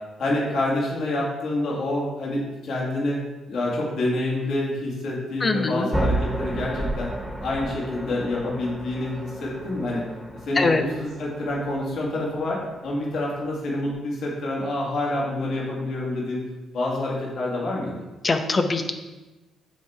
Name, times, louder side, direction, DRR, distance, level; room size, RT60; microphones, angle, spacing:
voice 1, 0.2-3.2 3.5-7.1 7.4-10.0 10.4-16.4 16.7-17.9, left 1 dB, 70° left, -4 dB, 2.1 m, -27 dB
voice 2, 5.4-5.9 10.6-10.8 18.2-18.9, left 3 dB, 35° left, 6 dB, 0.8 m, -22 dB
sound 1, 5.9-13.9, right 1 dB, 5° right, 1.1 m, -33 dB
9.1 x 3.6 x 4.3 m, 1.1 s
cardioid pair, 90°, 0 cm